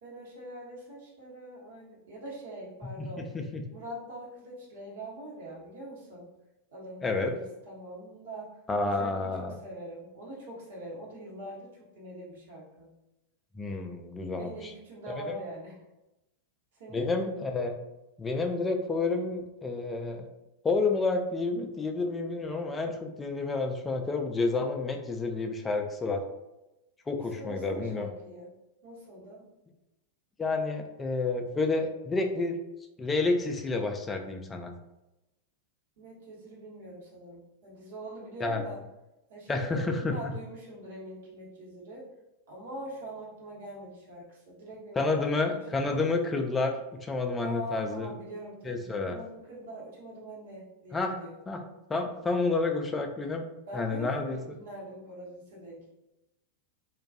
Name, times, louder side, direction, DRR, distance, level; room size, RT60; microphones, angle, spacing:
voice 1, 0.0-3.4 3.7-6.3 6.7-8.5 8.8-12.9 14.3-15.8 16.8-17.1 27.2-28.5 28.8-29.4 36.0-38.8 39.3-42.0 42.5-45.8 47.4-51.4 53.7-55.9, right 1 dB, 55° right, -5 dB, 0.9 m, -43 dB
voice 2, 3.0-3.6 7.0-7.3 8.7-9.5 13.6-14.7 15.2-15.4 16.9-17.7 18.2-20.3 20.6-26.2 27.1-28.1 30.4-32.6 33.0-34.7 38.4-38.6 39.5-40.3 45.0-46.8 47.0-48.1 48.6-49.2 50.9-51.2 51.5-51.6 51.9-53.4 53.7-54.4, left 3 dB, 15° left, 4 dB, 0.3 m, -30 dB
2.2 x 2.2 x 2.6 m, 0.94 s
figure-of-eight pair, 90°, 0 cm